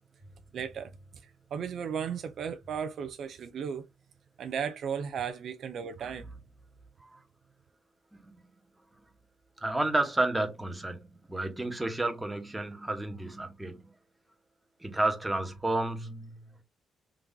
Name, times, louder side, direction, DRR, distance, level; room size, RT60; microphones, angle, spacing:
voice 1, 0.5-0.9 1.2-3.9 4.4-6.3, right 7 dB, 65° right, 0.4 m, -35 dB
voice 2, 8.1-8.5 9.6-13.8 14.8-16.5, right 2 dB, 10° right, 1.0 m, -31 dB
3.6 x 3.0 x 2.6 m
cardioid pair, 90°, 0 cm